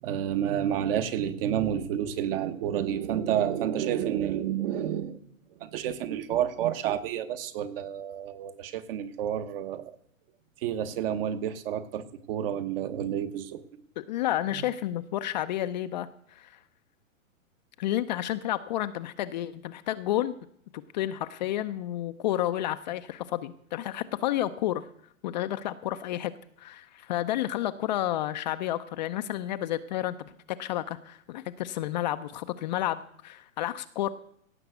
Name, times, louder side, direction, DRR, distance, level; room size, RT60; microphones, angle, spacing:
voice 1, 0.0-5.2 5.6-9.9 10.6-13.6, right 10 dB, 45° right, 11 dB, 1.3 m, -30 dB
voice 2, 14.0-16.6 17.8-20.3 20.7-24.9 25.2-26.3 26.6-34.1, left 13 dB, 35° left, 10 dB, 0.5 m, -31 dB
17.0 x 6.1 x 8.0 m, 0.67 s
hypercardioid pair, 140°, 41 cm